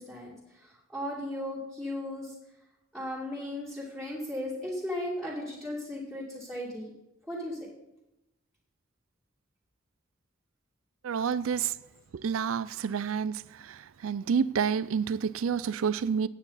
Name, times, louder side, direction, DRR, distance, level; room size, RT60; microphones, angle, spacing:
voice 1, 0.0-2.3 2.9-6.9 7.3-7.7 11.4-11.7 12.7-12.9, left 1 dB, ahead, 2.6 m, -36 dB
voice 2, 11.0-11.7 12.2-13.3 14.0-16.3, right 6 dB, 80° right, 0.4 m, -28 dB
15.0 x 9.1 x 4.1 m
head